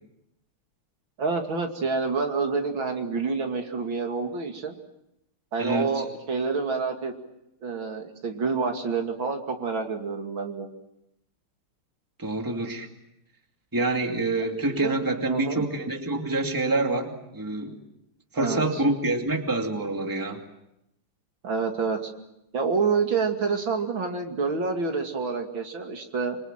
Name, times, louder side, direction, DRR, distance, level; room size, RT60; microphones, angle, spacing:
voice 1, 1.2-4.7 5.5-7.1 7.6-10.7 14.7-14.9 15.3-15.7 18.4-18.8 21.4-22.1 22.5-26.4, right 4 dB, 60° right, 3 dB, 3.2 m, -28 dB
voice 2, 5.6-6.0 12.2-12.9 13.7-17.8 18.3-20.4, right 2 dB, 10° right, 3 dB, 2.5 m, -27 dB
27.0 x 25.0 x 7.5 m, 0.85 s
omnidirectional pair, 2.4 m